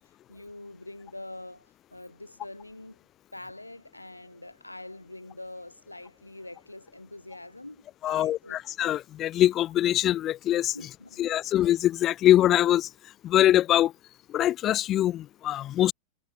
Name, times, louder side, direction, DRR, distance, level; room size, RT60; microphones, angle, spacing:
voice 1, 0.3-3.0 3.3-8.6 10.7-11.3, left 2 dB, 85° left, 3.9 m, -44 dB
voice 2, 8.0-10.7 11.2-12.9 13.2-13.9 14.3-15.9, left 12 dB, 30° left, 0.4 m, -23 dB
figure-of-eight pair, 90°, 0 cm